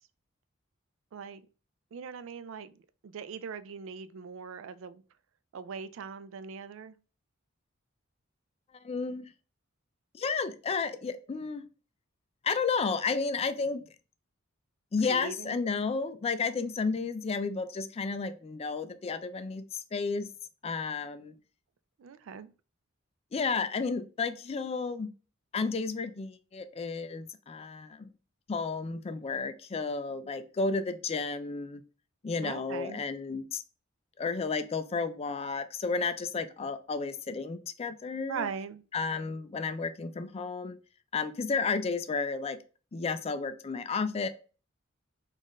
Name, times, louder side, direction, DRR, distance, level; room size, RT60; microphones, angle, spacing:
voice 1, 1.1-1.4 1.9-2.7 3.0-5.0 5.5-7.0 15.1-15.6 22.0-22.5 32.4-33.0 38.3-38.8, right 6 dB, 70° right, 0.4 m, -40 dB
voice 2, 8.8-9.3 10.1-11.6 12.4-13.8 14.9-20.3 20.6-21.3 23.3-25.1 25.5-28.1 28.5-31.8 32.2-33.6 34.2-38.5 38.9-40.8 41.1-42.6 42.9-44.3, left 4 dB, 30° left, 0.3 m, -32 dB
4.0 x 2.5 x 3.0 m
head